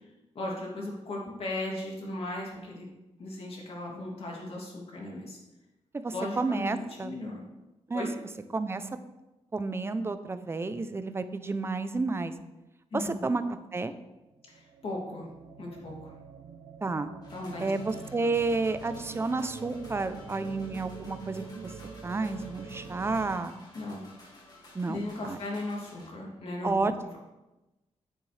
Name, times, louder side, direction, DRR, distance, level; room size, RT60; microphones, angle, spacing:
voice 1, 0.3-2.8 3.2-5.4 6.1-7.4 7.9-8.1 12.9-13.2 14.5-15.3 15.6-16.1 17.3-17.7 23.7-24.0 24.9-26.8, left 2 dB, 55° left, -3 dB, 2.6 m, -37 dB
voice 2, 5.9-7.1 7.9-8.1 8.5-8.9 9.5-12.3 12.9-13.4 13.7-13.9 16.8-17.1 17.6-21.7 22.0-23.5 24.7-25.4 26.6-26.9, right 3 dB, 20° right, 11 dB, 0.5 m, -31 dB
sound 1, 14.3-23.4, right 6 dB, 70° right, 0.7 m, -45 dB
sound 2, 17.2-26.1, left 2 dB, 35° left, 2.2 m, -54 dB
9.3 x 8.9 x 3.3 m, 1.0 s
wide cardioid pair, 140°, 12 cm